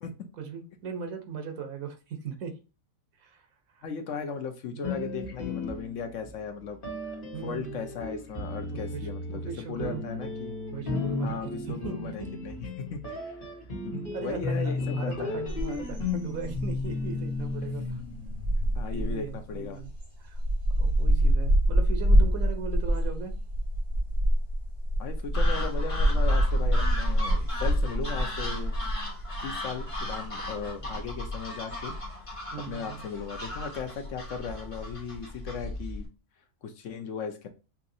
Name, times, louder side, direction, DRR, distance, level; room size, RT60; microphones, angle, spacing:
voice 1, 0.4-2.6 3.2-3.5 3.7-3.9 4.7-4.9 7.3-7.9 8.7-10.0 10.7-11.4 11.7-12.3 13.9-18.0 18.9-19.9 20.2-20.4 20.8-23.3 32.5-33.0, right 6 dB, 80° right, 1.4 m, -38 dB
voice 2, 3.8-6.8 7.4-9.4 9.7-10.5 11.2-13.4 13.8-15.4 18.7-19.8 25.0-28.8 29.4-31.9 32.7-36.1 36.6-37.5, left 5 dB, 65° left, 1.0 m, -37 dB
sound 1, 4.8-6.3 6.8-19.0, left 3 dB, 40° left, 1.5 m, -34 dB
sound 2, 15.5-35.2, equal, 50° right, 2.1 m, -27 dB
sound 3, 25.3-36.1, left 1 dB, 25° left, 1.3 m, -38 dB
5.7 x 2.8 x 2.7 m
omnidirectional pair, 1.4 m